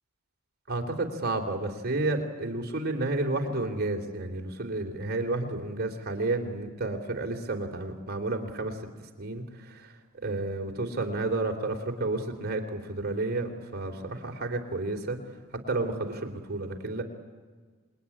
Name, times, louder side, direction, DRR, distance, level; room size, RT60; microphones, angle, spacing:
voice 1, 0.7-8.8 9.2-9.9 10.2-15.2 15.7-17.0, right 2 dB, 45° right, 3 dB, 3.3 m, -31 dB
27.5 x 21.5 x 9.9 m, 1.5 s
head